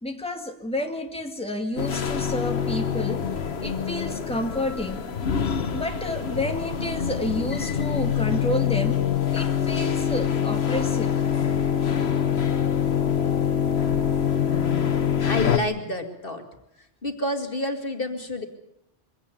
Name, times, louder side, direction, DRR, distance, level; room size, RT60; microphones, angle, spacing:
voice 1, 0.0-3.3 3.6-5.1 5.7-9.0 9.3-11.1, left 1 dB, 5° left, 3 dB, 2.1 m, -30 dB
sound 1, 1.8-15.6, left 8 dB, 70° left, 1.4 m, -25 dB
voice 2, 15.2-16.4 17.0-18.5, left 1 dB, 55° left, 6 dB, 2.4 m, -28 dB
23.5 x 17.5 x 8.6 m, 0.82 s
omnidirectional pair, 1.1 m